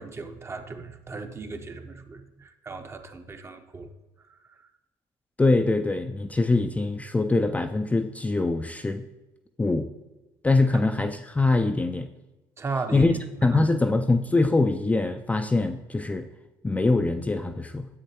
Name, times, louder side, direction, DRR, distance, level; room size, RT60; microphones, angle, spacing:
voice 1, 0.0-3.9 12.6-13.1 13.4-13.6, right 4 dB, 25° right, 7 dB, 0.8 m, -36 dB
voice 2, 5.4-9.0 9.6-9.9 10.4-12.1 12.9-13.1 13.4-16.2 16.6-17.9, left 2 dB, 15° left, 6 dB, 0.4 m, -23 dB
9.9 x 7.3 x 2.9 m, 1.1 s
supercardioid pair, 75°, 10 cm